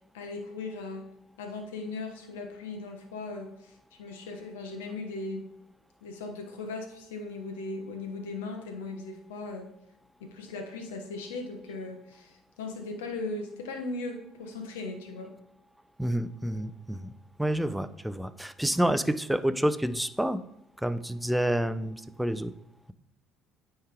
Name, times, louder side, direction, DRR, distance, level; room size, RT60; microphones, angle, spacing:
voice 1, 0.1-1.1 1.4-5.5 6.0-9.7 10.2-15.3, left 3 dB, 90° left, 4 dB, 1.0 m, -38 dB
voice 2, 16.0-17.1 17.4-20.4 20.8-22.5, right 1 dB, 5° right, 13 dB, 0.5 m, -28 dB
9.3 x 3.4 x 3.5 m, 0.80 s
hypercardioid pair, 70°, 0 cm